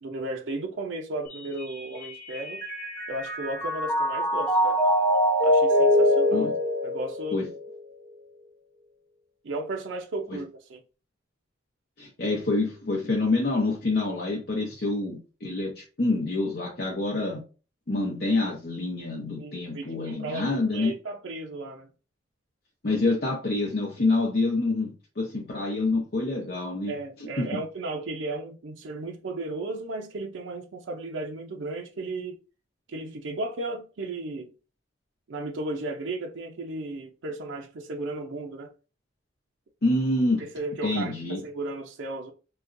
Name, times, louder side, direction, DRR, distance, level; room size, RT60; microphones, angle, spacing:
voice 1, 0.0-2.6 3.1-4.8 5.4-6.5 6.8-7.4 9.4-10.8 19.4-21.9 26.9-32.4 32.9-34.5 35.3-38.7 40.4-42.3, right 2 dB, 80° right, 0.5 m, -35 dB
Mallet percussion, 1.3-7.7, equal, 10° left, 0.8 m, -24 dB
voice 2, 12.0-17.4 17.9-20.9 22.8-26.9 27.2-27.6 39.8-40.5 40.8-41.4, left 2 dB, 55° left, 0.7 m, -27 dB
3.9 x 2.2 x 2.5 m
head